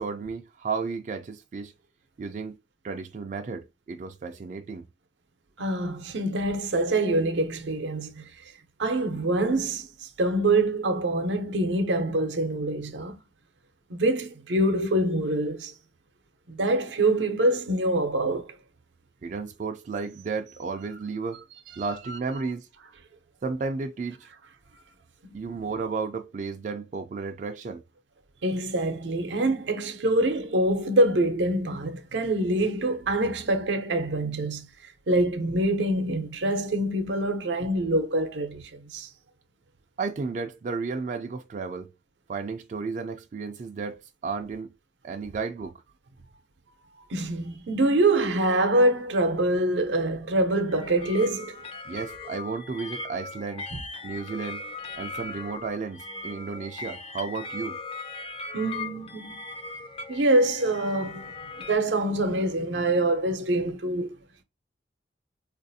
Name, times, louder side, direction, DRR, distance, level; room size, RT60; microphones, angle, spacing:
voice 1, 0.0-1.7 2.2-2.6 2.8-4.8 19.2-21.4 21.8-22.7 23.4-24.3 25.3-27.8 40.0-41.9 42.3-44.7 45.0-45.8 51.9-53.7 54.0-54.6 55.0-57.8, right 4 dB, 45° right, 0.3 m, -33 dB
voice 2, 5.6-8.3 8.8-13.2 13.9-15.7 16.5-18.6 25.2-25.4 28.4-39.1 47.1-51.6 53.7-53.8 58.5-59.4 60.1-64.2, right 1 dB, 85° right, 0.6 m, -25 dB
sound 1, 50.7-61.8, left 3 dB, 30° left, 0.4 m, -39 dB
3.9 x 2.5 x 2.6 m
head